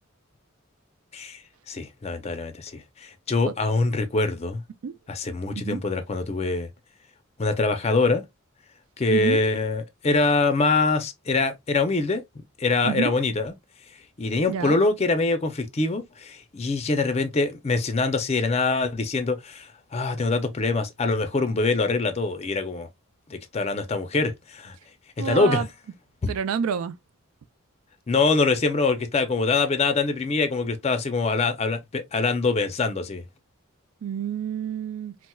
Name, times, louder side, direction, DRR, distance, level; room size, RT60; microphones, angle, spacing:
voice 1, 1.7-4.6 5.1-6.7 7.4-8.2 9.0-12.2 12.6-13.5 14.2-22.9 23.3-24.7 25.2-25.7 26.2-26.3 28.1-33.2, left 3 dB, 30° left, 0.4 m, -24 dB
voice 2, 9.1-9.4 12.8-13.1 14.5-14.8 25.2-25.7 26.3-26.9 34.0-35.1, right 7 dB, 85° right, 0.3 m, -28 dB
4.2 x 2.1 x 2.2 m
head